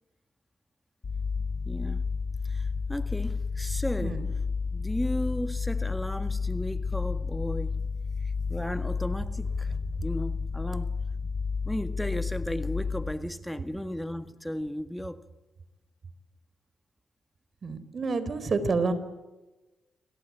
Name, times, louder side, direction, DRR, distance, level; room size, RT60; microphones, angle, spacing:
sound 1, 1.0-13.1, left 5 dB, 50° left, 1.7 m, -31 dB
voice 1, 1.7-2.0 2.4-4.2 4.7-7.9 8.2-9.7 10.0-11.0 11.7-15.3, equal, 5° left, 1.7 m, -35 dB
voice 2, 17.6-18.9, right 4 dB, 55° right, 4.1 m, -28 dB
27.5 x 24.5 x 8.7 m
hypercardioid pair, 40°, 0 cm